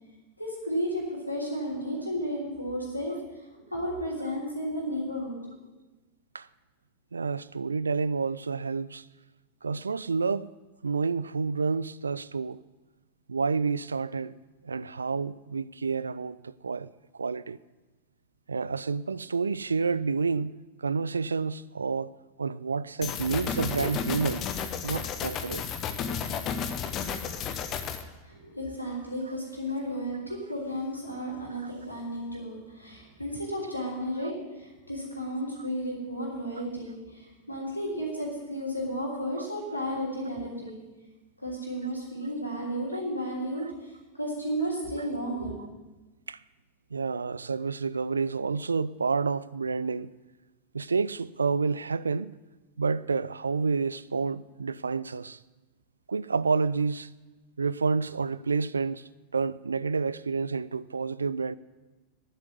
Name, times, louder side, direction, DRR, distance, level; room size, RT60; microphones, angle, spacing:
voice 1, 0.4-3.1 3.5-5.4 28.2-40.8 41.4-45.6, equal, 85° left, 3.3 m, -33 dB
voice 2, 7.1-9.1 9.6-10.5 10.8-12.6 13.3-14.3 14.6-17.6 18.5-22.1 22.4-24.5 24.8-25.6 39.4-39.5 46.3-46.4 46.9-50.1 50.7-52.3 52.8-55.4 56.1-57.1 57.6-61.5, right 4 dB, 75° right, 0.3 m, -29 dB
sound 1, 23.0-28.0, left 7 dB, 35° left, 0.9 m, -32 dB
10.5 x 7.9 x 8.3 m
figure-of-eight pair, 90°, 0 cm